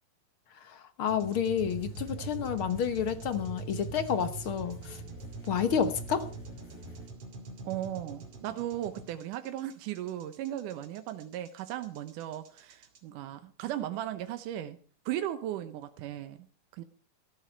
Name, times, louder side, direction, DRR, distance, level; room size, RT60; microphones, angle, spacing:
voice 1, 1.0-5.0 5.5-6.3, left 8 dB, 55° left, 10 dB, 1.6 m, -29 dB
sound 1, 1.1-13.0, right 5 dB, 50° right, 3.3 m, -44 dB
sound 2, 1.6-7.1, left 1 dB, 85° left, 7.3 m, -47 dB
voice 2, 7.6-14.8 15.1-16.5 16.7-16.8, right 12 dB, 90° right, 10 dB, 2.5 m, -36 dB
18.0 x 13.5 x 4.6 m, 0.40 s
omnidirectional pair, 3.6 m